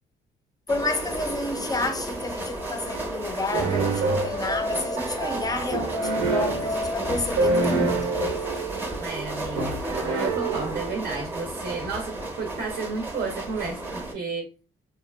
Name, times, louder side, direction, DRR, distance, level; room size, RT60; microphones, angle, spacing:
voice 1, 0.7-8.4, left 3 dB, 20° left, 0.4 m, -30 dB
sound 1, 0.7-14.1, right 2 dB, 10° right, 0.7 m, -33 dB
sound 2, 3.5-11.2, right 3 dB, 90° right, 0.7 m, -27 dB
voice 2, 7.5-8.0 9.0-14.5, right 4 dB, 50° right, 0.6 m, -33 dB
2.7 x 2.3 x 2.2 m
cardioid pair, 90°, 20 cm